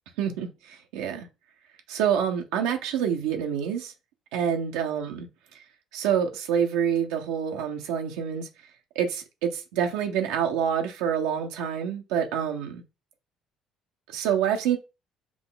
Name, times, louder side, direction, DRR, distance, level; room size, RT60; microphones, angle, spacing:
voice 1, 0.2-1.3 1.9-3.9 4.3-5.3 5.5-5.6 5.9-8.5 8.9-12.8 14.1-14.8, right 8 dB, 85° right, 0.7 m, -27 dB
5.9 x 2.2 x 3.8 m
supercardioid pair, 75°, 0 cm